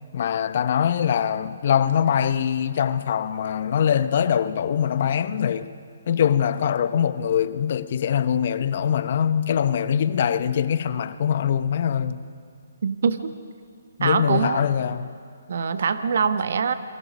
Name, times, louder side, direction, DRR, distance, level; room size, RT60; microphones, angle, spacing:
voice 1, 0.1-5.7 6.1-12.2 14.0-15.1, left 8 dB, 50° left, 0.8 m, -23 dB
voice 2, 12.8-13.3 14.0-14.7 15.5-16.7, right 6 dB, 60° right, 1.2 m, -23 dB
27.0 x 22.0 x 5.3 m
hypercardioid pair, 150°, 0 cm